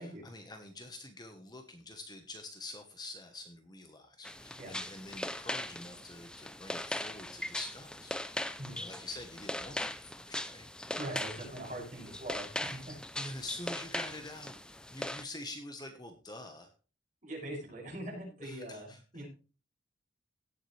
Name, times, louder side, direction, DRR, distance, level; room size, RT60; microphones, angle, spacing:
voice 1, 0.0-8.2 8.7-10.7 13.1-16.7 18.4-19.2, left 2 dB, 20° left, 6 dB, 1.2 m, -46 dB
sound 1, 4.2-15.2, left 1 dB, 5° left, 0.5 m, -40 dB
voice 2, 10.9-13.0 17.2-19.3, right 1 dB, 40° right, -3 dB, 6.6 m, -42 dB
17.0 x 7.4 x 3.3 m, 0.36 s
head